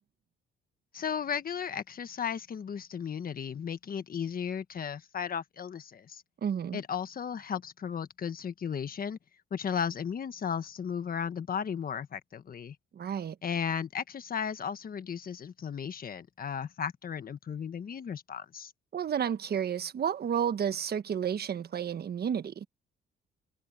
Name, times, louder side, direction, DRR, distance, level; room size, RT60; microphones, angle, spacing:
voice 1, 0.9-6.2 6.7-9.2 9.5-12.8 13.4-18.7, left 7 dB, 45° left, 1.4 m, -35 dB
voice 2, 6.4-6.8 12.9-13.4 18.9-22.7, right 8 dB, 55° right, 1.3 m, -31 dB
cardioid pair, 90°, 20 cm